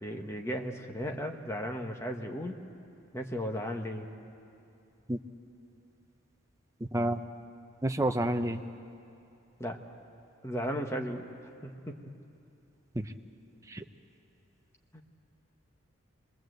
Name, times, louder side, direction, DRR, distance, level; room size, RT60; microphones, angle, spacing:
voice 1, 0.0-2.6 3.1-4.1 9.6-9.8 10.4-11.2 11.6-12.0 14.9-15.0, equal, 15° left, 3 dB, 1.2 m, -35 dB
voice 2, 6.9-7.2 7.8-8.6 13.0-13.1 13.7-13.8, right 1 dB, 15° right, 7 dB, 0.6 m, -29 dB
27.0 x 20.5 x 8.0 m, 2.7 s
head